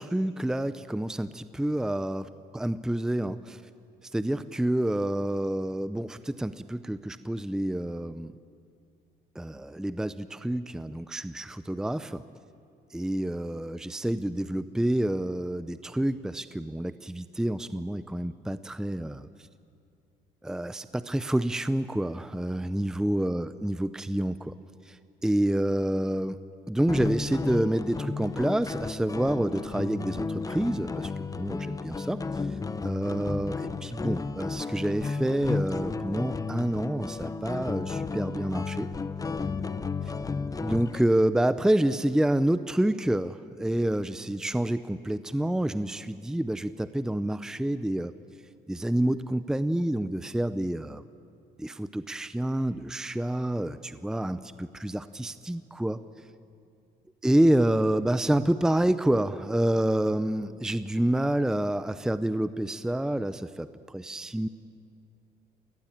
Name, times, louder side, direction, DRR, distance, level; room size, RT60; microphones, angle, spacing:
voice 1, 0.0-2.3 2.5-3.6 4.1-8.3 9.4-12.2 12.9-19.3 20.4-24.5 24.9-25.0 25.2-26.4 26.7-32.2 32.8-38.9 40.6-48.1 48.7-51.0 51.6-56.0 57.2-64.5, right 1 dB, 5° right, 13 dB, 0.6 m, -28 dB
sound 1, 26.9-41.0, left 4 dB, 20° left, 1.0 m, -33 dB
28.0 x 19.0 x 9.0 m, 2.4 s
cardioid pair, 110°, 17 cm